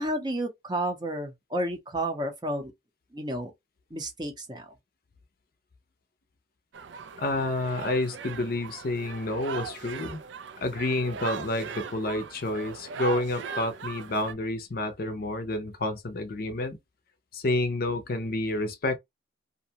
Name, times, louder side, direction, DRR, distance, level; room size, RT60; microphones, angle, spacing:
voice 1, 0.0-2.7 3.1-3.5 3.9-4.7, right 1 dB, 20° right, 0.6 m, -31 dB
sound 1, 6.7-14.3, right 6 dB, 65° right, 0.4 m, -39 dB
voice 2, 7.2-10.2 10.6-16.8 17.3-19.0, left 2 dB, 50° left, 0.5 m, -29 dB
2.5 x 2.2 x 2.7 m
head